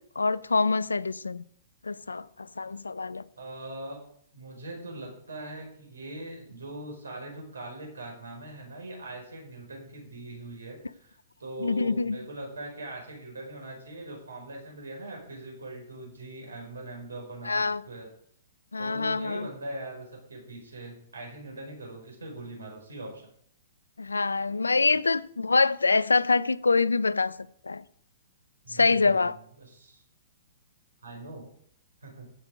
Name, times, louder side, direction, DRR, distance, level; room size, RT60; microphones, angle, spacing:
voice 1, 0.0-1.4 1.8-3.2 11.6-12.2 17.5-17.8 18.7-19.5 24.0-27.3 27.7-27.8 28.7-29.4, left 4 dB, 90° left, 0.5 m, -25 dB
voice 2, 3.4-4.0 4.3-18.1 18.8-23.3 24.7-25.0 28.6-30.0 31.0-31.5 32.0-32.3, right 2 dB, 85° right, 5.1 m, -41 dB
15.5 x 6.2 x 5.1 m
hypercardioid pair, 120°, 0 cm